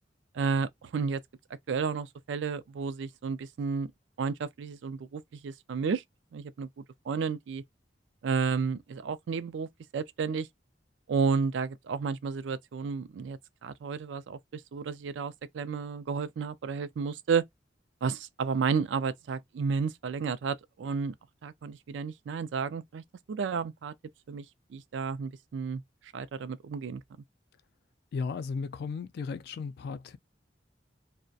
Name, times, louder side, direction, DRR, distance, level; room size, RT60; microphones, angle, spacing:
voice 1, 0.3-1.2 1.7-3.9 4.2-6.0 6.3-7.6 8.2-9.7 9.9-10.5 11.1-17.5 18.0-21.1 21.4-23.0 23.3-23.9 24.3-24.4 24.7-25.8 26.1-27.0, right 5 dB, 85° right, 0.4 m, -32 dB
voice 2, 28.1-30.2, left 5 dB, 60° left, 0.3 m, -35 dB
2.6 x 2.1 x 2.3 m
head